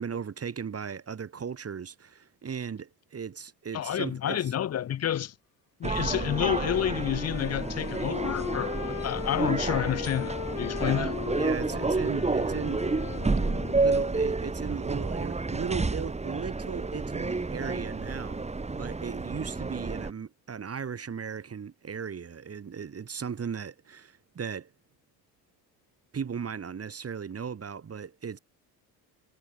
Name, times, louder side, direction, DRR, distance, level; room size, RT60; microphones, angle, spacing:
voice 1, 0.0-4.5 11.4-12.9 13.7-24.7 26.1-28.4, right 6 dB, 30° right, 2.0 m, -37 dB
voice 2, 3.7-5.3 5.8-11.2, left 10 dB, 30° left, 0.9 m, -29 dB
sound 1, 5.8-20.1, right 3 dB, 15° right, 1.6 m, -30 dB
Wind instrument woodwind instrument, 6.0-14.4, left 21 dB, 80° left, 2.3 m, -38 dB
hypercardioid pair, 65°, 48 cm